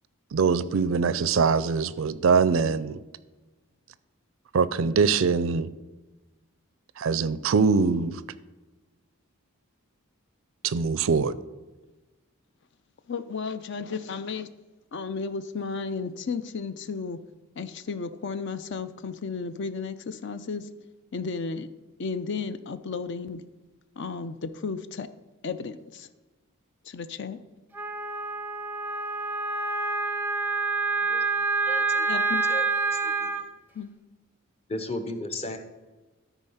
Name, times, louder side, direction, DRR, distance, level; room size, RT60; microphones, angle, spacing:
voice 1, 0.3-3.0 4.5-5.7 7.0-8.2 10.6-11.3, right 5 dB, 65° right, 16 dB, 0.4 m, -23 dB
voice 2, 13.1-14.5 14.9-17.2 17.6-20.7 21.1-21.7 22.0-23.4 24.0-25.1 25.4-26.1 26.8-27.4 32.1-32.4 33.7-33.9, left 5 dB, 55° left, 12 dB, 0.5 m, -33 dB
Wind instrument woodwind instrument, 27.7-33.4, right 4 dB, 10° right, 0.5 m, -27 dB
voice 3, 31.6-32.2 32.5-32.7 32.9-33.5 34.7-35.6, left 1 dB, 30° left, 7 dB, 0.8 m, -35 dB
13.0 x 4.6 x 5.6 m, 1.2 s
head